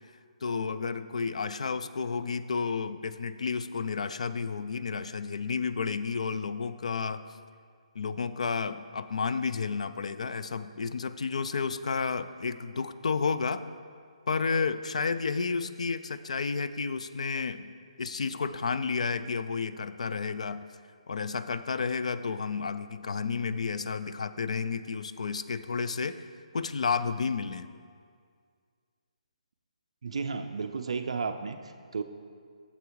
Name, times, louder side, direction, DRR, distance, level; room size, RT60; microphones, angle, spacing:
voice 1, 0.4-7.2 8.0-13.6 14.3-17.7 18.0-20.6 21.1-26.3 26.5-27.7, left 5 dB, 65° left, 13 dB, 0.4 m, -31 dB
voice 2, 30.0-32.0, right 5 dB, 55° right, 7 dB, 0.4 m, -33 dB
8.2 x 7.1 x 4.6 m, 2.1 s
hypercardioid pair, 180°, 4 cm